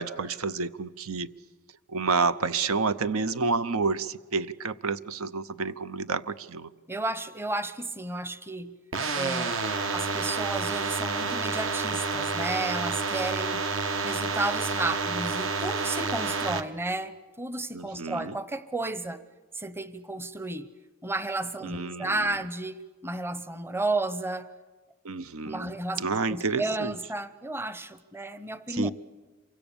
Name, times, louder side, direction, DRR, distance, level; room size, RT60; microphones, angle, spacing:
voice 1, 0.0-1.3 1.9-6.7 17.7-18.4 21.6-22.4 25.0-26.9 28.7-28.9, right 4 dB, 80° right, 14 dB, 0.8 m, -29 dB
voice 2, 6.9-8.7 9.1-9.6 9.9-13.6 14.0-19.2 19.5-20.7 21.0-24.5 25.4-26.0 26.3-28.9, right 2 dB, 10° right, 13 dB, 0.8 m, -32 dB
sound 1, 8.9-16.6, right 4 dB, 65° right, 1.3 m, -29 dB
27.5 x 24.5 x 7.1 m, 1.3 s
head